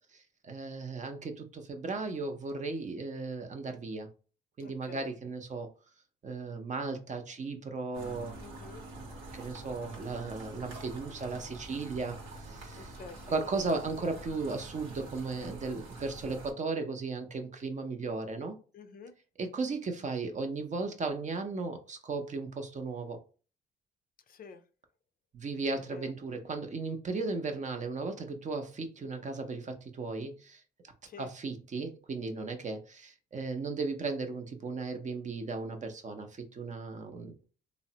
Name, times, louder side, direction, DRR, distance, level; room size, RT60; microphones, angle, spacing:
voice 1, 0.1-4.1 4.6-5.7 6.2-8.4 8.9-12.9 13.3-18.6 19.4-23.2 25.3-30.6 31.2-37.4, right 3 dB, 40° right, 0.6 m, -36 dB
voice 2, 4.6-5.1 8.4-8.8 12.8-13.4 18.7-19.1 24.3-24.6 25.9-26.1 31.1-31.3, left 5 dB, 45° left, 0.4 m, -48 dB
sound 1, 7.9-16.5, right 2 dB, 90° right, 0.9 m, -46 dB
3.2 x 2.0 x 2.7 m
cardioid pair, 90°, 20 cm